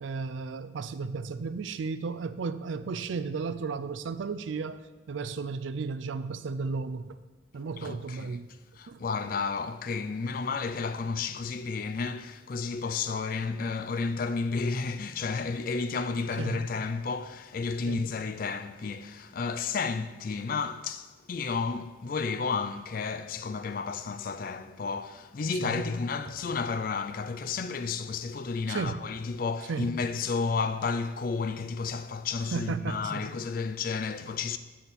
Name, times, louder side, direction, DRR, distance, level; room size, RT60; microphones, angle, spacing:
voice 1, 0.0-4.8 5.1-7.2 7.5-8.5 8.9-9.0 16.4-16.6 17.9-18.0 25.6-25.9 28.7-29.0 29.7-29.9 32.5-33.3, right 4 dB, 80° right, 0.4 m, -34 dB
voice 2, 7.8-8.4 8.8-34.6, left 4 dB, 45° left, 0.4 m, -32 dB
7.7 x 4.1 x 6.8 m
head